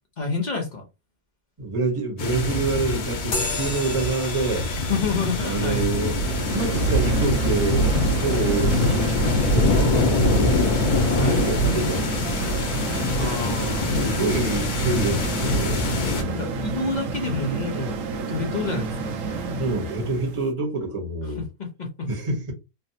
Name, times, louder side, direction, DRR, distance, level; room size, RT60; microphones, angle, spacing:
voice 1, 0.2-0.8 4.9-5.9 9.5-10.0 11.1-11.5 13.1-14.0 16.3-19.2 21.6-22.1, left 3 dB, 40° left, 0.7 m, -28 dB
voice 2, 1.6-4.7 5.4-6.2 6.5-10.6 11.2-12.1 13.9-16.4 19.6-21.5 22.1-22.5, right 3 dB, 25° right, 0.9 m, -27 dB
sound 1, 2.2-16.2, left 2 dB, 90° left, 1.2 m, -24 dB
sound 2, 3.3-11.2, left 3 dB, 65° left, 1.4 m, -37 dB
sound 3, 5.9-20.4, right 3 dB, 65° right, 1.0 m, -30 dB
3.3 x 2.0 x 2.7 m
omnidirectional pair, 1.6 m